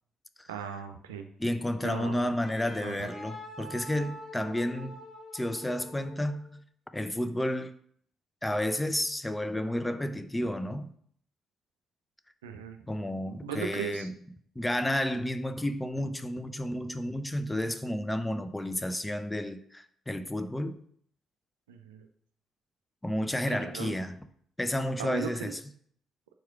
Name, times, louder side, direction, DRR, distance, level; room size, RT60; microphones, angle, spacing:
voice 1, 0.5-1.3 1.8-2.4 2.8-3.1 12.4-12.8 13.3-14.1 21.7-22.1 23.3-24.0 25.0-25.6, right 7 dB, 80° right, 0.5 m, -38 dB
voice 2, 1.4-5.0 5.3-6.6 6.9-7.7 8.4-10.9 12.9-14.1 14.6-20.8 23.0-24.2 24.6-25.6, left 1 dB, 10° left, 0.6 m, -31 dB
Wind instrument woodwind instrument, 2.4-6.5, equal, 40° left, 2.4 m, -46 dB
4.8 x 4.5 x 5.9 m
figure-of-eight pair, 45°, 0 cm